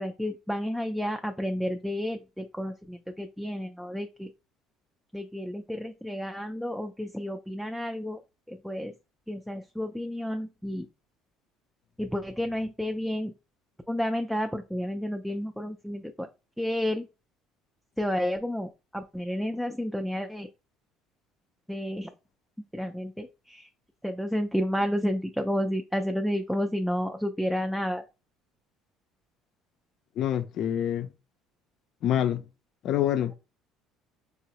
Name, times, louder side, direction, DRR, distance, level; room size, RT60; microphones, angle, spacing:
voice 1, 0.0-4.3 5.1-8.2 8.5-8.9 9.3-10.9 12.0-13.3 13.9-16.3 16.6-17.1 18.0-20.5 21.7-22.1 22.7-23.7 24.0-28.0, equal, ahead, 0.3 m, -31 dB
voice 2, 30.2-31.1 32.0-32.4 32.8-33.3, left 11 dB, 60° left, 0.5 m, -26 dB
3.7 x 2.0 x 2.8 m
supercardioid pair, 95°, 0 cm